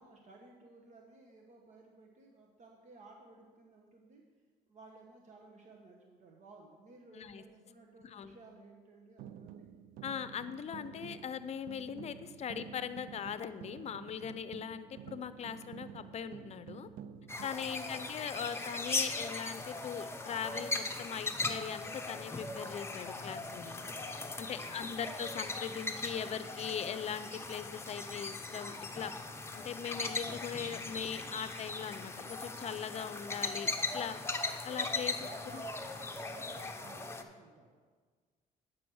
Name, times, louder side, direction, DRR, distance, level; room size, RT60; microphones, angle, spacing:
voice 1, 0.0-4.2 4.7-9.7 17.6-18.1 24.5-25.0 35.2-37.8, right 3 dB, 55° right, 0 dB, 1.2 m, -56 dB
voice 2, 7.1-7.4 8.0-8.4 10.0-16.9 17.4-23.7 24.4-29.1 29.5-34.2 34.6-35.3 35.5-35.6, left 8 dB, 45° left, 12 dB, 0.6 m, -40 dB
sound 1, 9.2-17.5, right 8 dB, 75° right, 0.5 m, -50 dB
sound 2, 17.3-37.2, left 3 dB, 15° left, 0.9 m, -39 dB
9.3 x 6.2 x 6.3 m, 1.5 s
cardioid pair, 85°, 15 cm